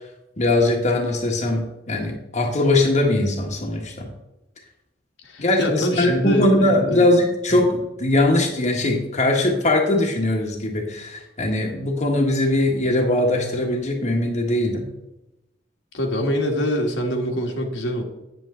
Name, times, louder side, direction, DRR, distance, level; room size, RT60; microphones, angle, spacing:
voice 1, 0.4-4.1 5.4-14.9, left 1 dB, 40° left, 1 dB, 1.3 m, -21 dB
voice 2, 5.2-7.1 7.5-7.6 15.9-18.0, equal, 70° left, 1 dB, 1.6 m, -24 dB
9.1 x 7.9 x 3.7 m, 0.94 s
head